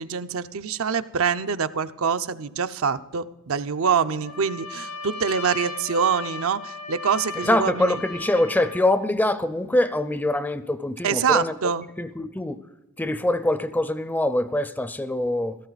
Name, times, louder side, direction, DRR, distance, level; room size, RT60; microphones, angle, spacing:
voice 1, 0.0-8.0 11.0-11.8, right 6 dB, 70° right, 0.6 m, -25 dB
Trumpet, 4.1-9.0, left 3 dB, 85° left, 3.8 m, -36 dB
voice 2, 7.4-11.6 12.0-12.6 13.0-15.6, left 1 dB, 10° left, 0.5 m, -24 dB
16.5 x 14.0 x 4.0 m
head